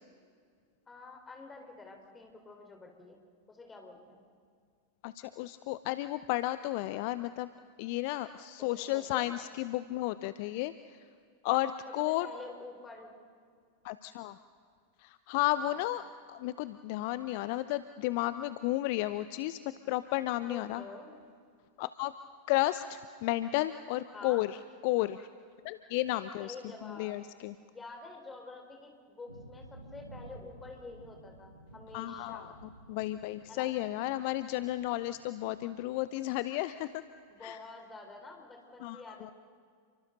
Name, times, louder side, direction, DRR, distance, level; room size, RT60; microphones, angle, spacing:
voice 1, 0.9-3.2 3.5-4.2 8.6-9.3 12.1-13.1 15.6-15.9 20.5-21.1 24.1-24.5 25.0-25.1 26.4-27.2 27.7-32.5 33.5-33.7 37.3-39.3, left 3 dB, 15° left, 2 dB, 4.2 m, -48 dB
voice 2, 5.0-7.5 7.8-11.0 11.4-12.3 13.8-14.4 15.0-19.6 19.9-20.8 21.8-22.1 22.5-24.6 24.8-25.3 25.6-26.6 26.8-27.5 31.9-32.5 32.9-37.0 37.4-37.6 38.8-39.3, left 16 dB, 45° left, 14 dB, 0.6 m, -33 dB
sound 1, 29.3-37.5, right 1 dB, 85° right, 1.8 m, -54 dB
29.5 x 24.0 x 4.0 m, 2.1 s
figure-of-eight pair, 90°, 0 cm